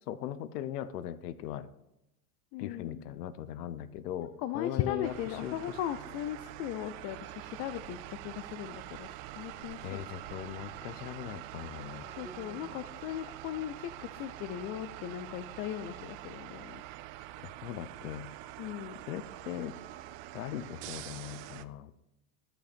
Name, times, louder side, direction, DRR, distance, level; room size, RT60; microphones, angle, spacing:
voice 1, 0.1-1.7 2.6-5.1 5.4-5.8 9.8-12.1 17.4-18.3 19.1-19.8 20.3-21.9, left 11 dB, 80° left, 15 dB, 0.8 m, -39 dB
voice 2, 2.5-3.0 4.4-9.1 9.4-10.0 12.2-16.8 18.6-19.0, left 12 dB, 35° left, 12 dB, 0.4 m, -38 dB
sound 1, 5.0-21.7, right 15 dB, 45° right, 0.4 m, -45 dB
sound 2, 11.1-18.6, left 1 dB, 15° left, 1.9 m, -59 dB
13.0 x 5.7 x 4.3 m, 0.85 s
supercardioid pair, 120°, 46 cm